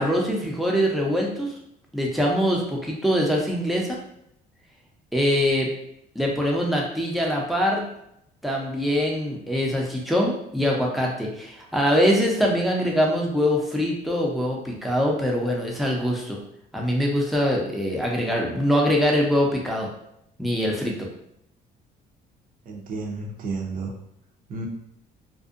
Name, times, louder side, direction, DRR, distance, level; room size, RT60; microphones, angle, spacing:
voice 1, 0.0-1.5 1.9-4.0 5.1-5.7 6.1-7.8 8.4-16.4 16.7-19.9 20.4-21.1, equal, ahead, -2 dB, 0.6 m, -23 dB
voice 2, 22.7-23.9 24.5-24.7, right 3 dB, 55° right, 1 dB, 0.6 m, -31 dB
2.6 x 2.1 x 2.5 m, 0.77 s
cardioid pair, 110°, 17 cm